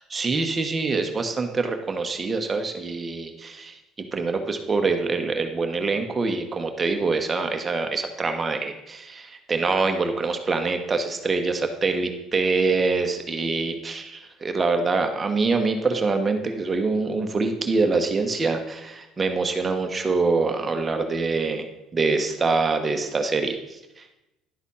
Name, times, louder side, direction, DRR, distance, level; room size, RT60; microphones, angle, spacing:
voice 1, 0.1-3.8 4.1-21.7 21.9-24.1, right 3 dB, 25° right, 5 dB, 1.2 m, -25 dB
11.5 x 4.0 x 5.6 m, 0.91 s
cardioid pair, 100°, 0 cm